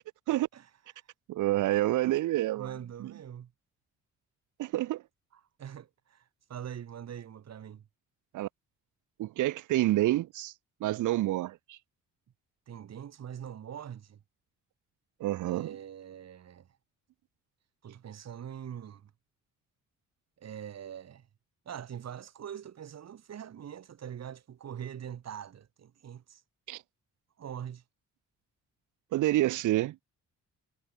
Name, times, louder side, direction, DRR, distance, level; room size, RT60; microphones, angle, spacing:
voice 1, 1.3-2.7 3.0-3.1 4.6-5.0 8.3-8.5 9.2-10.5 10.8-11.8 15.2-15.8 26.7-26.8 29.1-30.0, right 15 dB, 80° right, 1.0 m, -28 dB
voice 2, 2.5-3.5 5.6-6.2 6.5-7.8 12.7-14.2 15.5-16.7 17.8-19.1 20.4-21.2 21.7-26.4 27.4-27.8, right 9 dB, 60° right, 4.3 m, -43 dB
cardioid pair, 90°, 30 cm